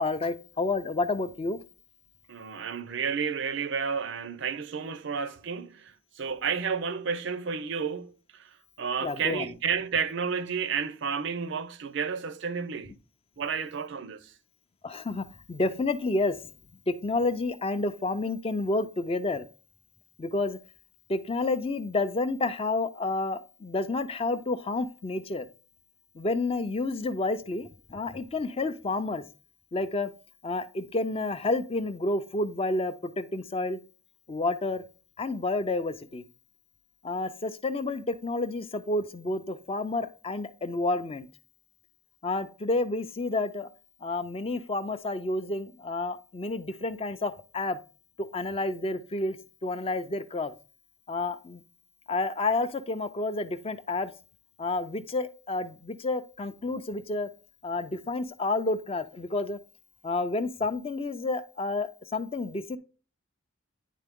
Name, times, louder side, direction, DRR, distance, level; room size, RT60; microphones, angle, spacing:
voice 1, 0.0-1.6 9.0-9.5 14.8-16.4 16.9-19.5 20.2-20.6 21.1-25.5 26.2-29.2 29.7-30.1 30.4-33.8 34.3-34.8 35.2-36.2 37.0-41.3 42.2-43.7 44.0-47.8 48.2-49.4 49.6-50.5 51.1-51.6 52.1-54.1 54.6-57.3 57.6-59.6 60.0-62.8, left 2 dB, 30° left, 0.5 m, -30 dB
voice 2, 2.3-13.0 13.4-14.3, right 6 dB, 60° right, 0.5 m, -31 dB
10.0 x 3.8 x 3.6 m
head